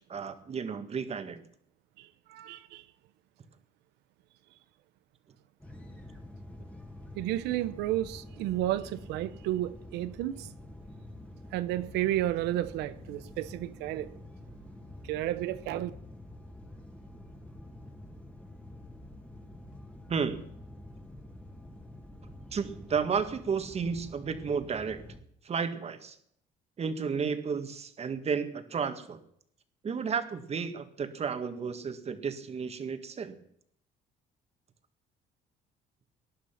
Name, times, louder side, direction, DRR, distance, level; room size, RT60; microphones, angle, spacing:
voice 1, 0.1-1.4 20.1-20.5 22.5-25.1 25.4-26.2 26.8-29.2 29.8-33.4, right 6 dB, 40° right, 1.9 m, -32 dB
voice 2, 2.0-2.8 7.1-10.5 11.5-14.2 15.0-15.9, right 14 dB, 90° right, 1.0 m, -32 dB
sound 1, 5.6-25.2, left 1 dB, 5° left, 2.6 m, -48 dB
19.0 x 11.5 x 5.9 m
cardioid pair, 110°, 17 cm